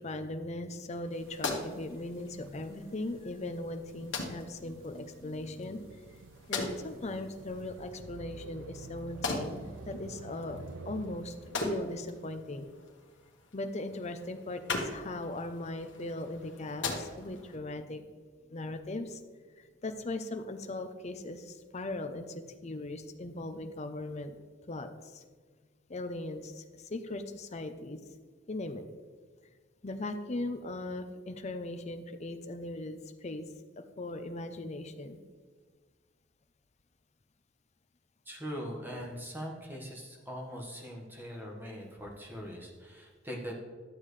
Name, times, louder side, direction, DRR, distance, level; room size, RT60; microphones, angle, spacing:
voice 1, 0.0-6.0 6.5-10.6 10.8-11.3 11.6-12.7 13.5-18.0 18.5-19.2 19.6-24.3 24.7-25.2 25.9-28.0 28.5-28.8 29.8-33.5 33.8-35.2, left 2 dB, 35° left, 8 dB, 0.6 m, -39 dB
sound 1, 0.9-17.5, left 3 dB, 65° left, 1.5 m, -41 dB
sound 2, 1.1-11.6, right 4 dB, 80° right, 0.4 m, -50 dB
voice 2, 38.2-43.6, equal, 10° right, 0 dB, 1.4 m, -41 dB
11.5 x 7.4 x 3.2 m, 1.5 s
head